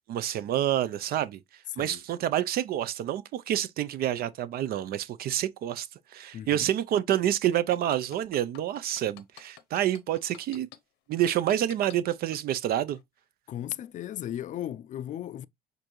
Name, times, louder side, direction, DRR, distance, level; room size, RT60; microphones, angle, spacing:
voice 1, 0.1-1.4 1.8-10.7 11.1-13.0, right 11 dB, 65° right, 0.5 m, -28 dB
voice 2, 6.3-6.7 13.5-15.5, left 11 dB, 50° left, 0.4 m, -36 dB
sound 1, 7.5-10.8 11.3-12.4 12.9-13.0, left 14 dB, 85° left, 0.8 m, -48 dB
6.7 x 2.6 x 3.0 m
cardioid pair, 110°, 17 cm